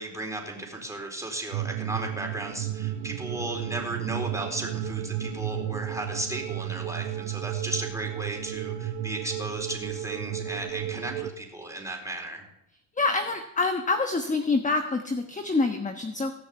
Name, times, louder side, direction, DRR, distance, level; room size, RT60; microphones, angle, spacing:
voice 1, 0.0-12.5, right 2 dB, 5° right, 1 dB, 4.2 m, -35 dB
sound 1, 1.5-11.3, right 11 dB, 80° right, 1.1 m, -33 dB
voice 2, 13.0-16.3, left 3 dB, 15° left, 7 dB, 1.2 m, -26 dB
17.5 x 6.7 x 8.3 m, 0.84 s
supercardioid pair, 85°, 46 cm